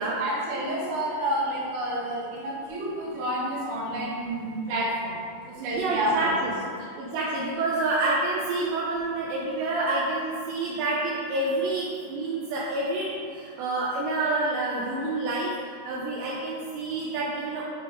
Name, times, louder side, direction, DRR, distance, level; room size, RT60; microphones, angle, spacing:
voice 1, 0.0-5.2 5.4-6.3, right 1 dB, 70° right, -6 dB, 2.0 m, -29 dB
voice 2, 5.6-15.5 15.8-17.7, right 2 dB, 85° right, -5 dB, 2.6 m, -28 dB
7.5 x 3.5 x 4.5 m, 2.1 s
omnidirectional pair, 5.7 m